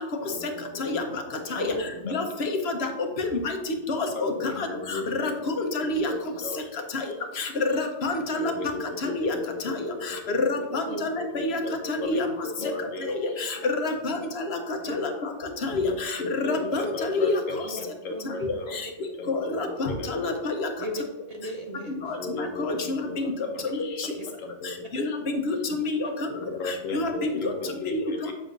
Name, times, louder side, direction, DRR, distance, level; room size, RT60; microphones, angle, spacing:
voice 1, 0.2-2.5 4.1-5.3 5.6-7.2 8.2-10.3 10.7-10.8 11.2-13.5 13.9-14.0 15.7-18.8 19.2-20.4 22.0-25.2 25.5-25.7 26.3-28.3, left 2 dB, 90° left, 2 dB, 1.4 m, -37 dB
voice 2, 2.1-2.9 3.2-3.6 4.0-4.7 5.1-6.1 6.9-7.0 7.4-8.5 9.0-9.4 10.3-11.6 11.9-12.3 13.1-14.6 15.0-15.1 15.6-17.4 19.3-20.7 22.1-23.0 24.0-24.1 24.9-26.1 26.9-27.3 27.9-28.0, left 3 dB, 55° left, 4 dB, 1.1 m, -28 dB
voice 3, 18.1-18.5 20.8-21.9 26.0-26.1, right 1 dB, 40° right, 1 dB, 0.6 m, -35 dB
7.5 x 6.2 x 2.6 m, 1.1 s
omnidirectional pair, 1.3 m